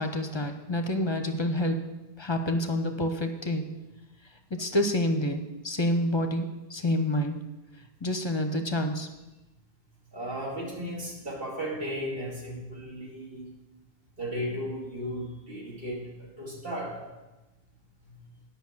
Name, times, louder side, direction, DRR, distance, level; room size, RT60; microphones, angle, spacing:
voice 1, 0.0-1.8 2.2-3.6 4.5-7.4 8.0-9.1, left 1 dB, 30° left, 6 dB, 0.8 m, -28 dB
voice 2, 10.1-13.5 14.2-17.0 18.1-18.2, equal, 60° right, -2 dB, 2.6 m, -35 dB
9.6 x 5.6 x 7.2 m, 1.1 s
omnidirectional pair, 1.1 m